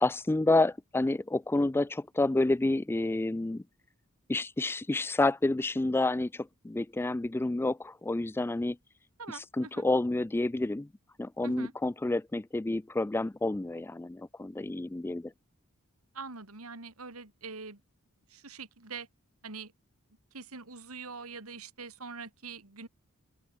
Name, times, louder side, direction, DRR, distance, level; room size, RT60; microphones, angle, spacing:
voice 1, 0.0-3.6 4.3-8.8 9.3-10.9 11.2-15.3, left 2 dB, 10° left, 0.3 m, -29 dB
voice 2, 9.2-9.8 11.4-11.7 16.1-17.8 18.3-19.1 19.4-19.7 20.3-22.9, right 4 dB, 75° right, 2.9 m, -43 dB
open air
head